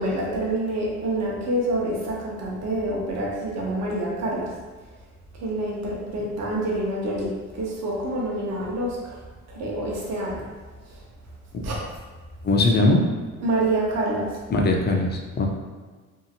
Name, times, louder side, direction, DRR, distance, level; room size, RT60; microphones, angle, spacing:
voice 1, 0.0-4.5 5.4-9.2 9.5-10.5 10.9-11.0 11.6-11.7 13.4-14.4, right 1 dB, 60° right, -4 dB, 0.8 m, -27 dB
voice 2, 12.4-13.0 14.5-15.5, left 2 dB, 35° left, 1 dB, 0.5 m, -20 dB
2.8 x 2.4 x 2.7 m, 1.4 s
cardioid pair, 90°, 30 cm